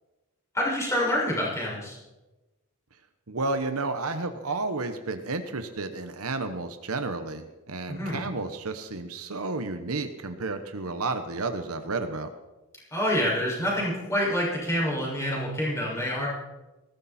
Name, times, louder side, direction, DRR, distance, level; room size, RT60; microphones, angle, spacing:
voice 1, 0.5-2.0 7.9-8.2 12.9-16.3, equal, 15° left, -4 dB, 6.0 m, -27 dB
voice 2, 3.3-12.3, right 3 dB, 80° right, 8 dB, 1.1 m, -31 dB
20.0 x 15.5 x 4.4 m, 1.1 s
head